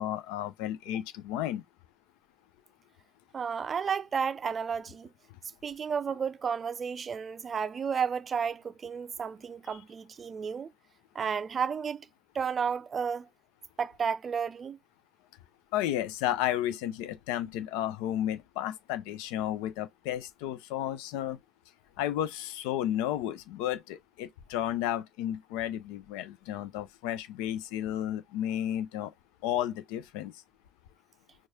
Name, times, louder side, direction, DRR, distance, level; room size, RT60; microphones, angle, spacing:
voice 1, 0.0-1.6 9.7-9.8 15.7-21.4 22.0-29.1 29.4-30.3, left 12 dB, 75° left, 0.5 m, -32 dB
voice 2, 3.3-5.1 5.6-10.7 11.1-12.1 12.3-13.3 13.8-14.8, right 6 dB, 35° right, 0.4 m, -32 dB
4.7 x 2.4 x 2.7 m
hypercardioid pair, 70°, 0 cm